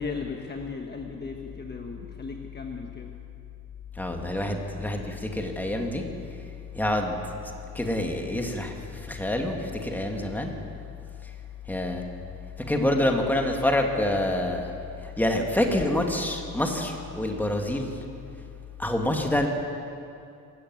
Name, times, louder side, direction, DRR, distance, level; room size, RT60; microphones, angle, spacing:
voice 1, 0.0-3.1 12.7-13.0, left 4 dB, 30° left, 2 dB, 1.3 m, -36 dB
voice 2, 4.0-6.0 6.7-7.2 7.7-10.5 11.7-12.0 12.7-14.7 15.0-17.9 18.8-19.5, left 1 dB, 5° left, 2 dB, 2.0 m, -27 dB
23.5 x 13.5 x 9.4 m, 2.6 s
cardioid pair, 165°, 35 cm